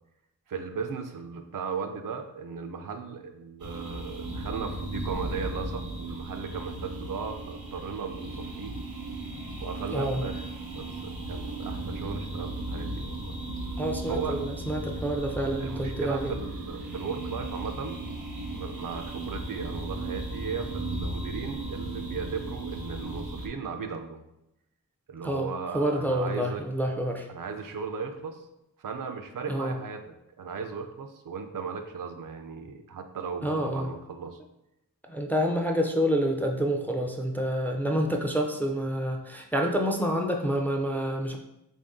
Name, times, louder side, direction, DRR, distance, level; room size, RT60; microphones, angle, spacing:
voice 1, 0.5-8.7 9.6-13.4 14.1-14.4 15.6-18.0 18.5-24.2 25.1-26.6 27.3-28.5 28.8-34.4, right 5 dB, 65° right, 6 dB, 0.5 m, -36 dB
sound 1, 3.6-23.5, right 2 dB, 85° right, 0.9 m, -36 dB
voice 2, 9.9-10.2 13.8-16.3 25.2-25.5 25.7-27.3 29.5-29.8 33.4-33.9 35.1-41.4, equal, 5° left, 2 dB, 0.4 m, -28 dB
3.4 x 2.7 x 3.5 m, 0.88 s
wide cardioid pair, 75°, 35 cm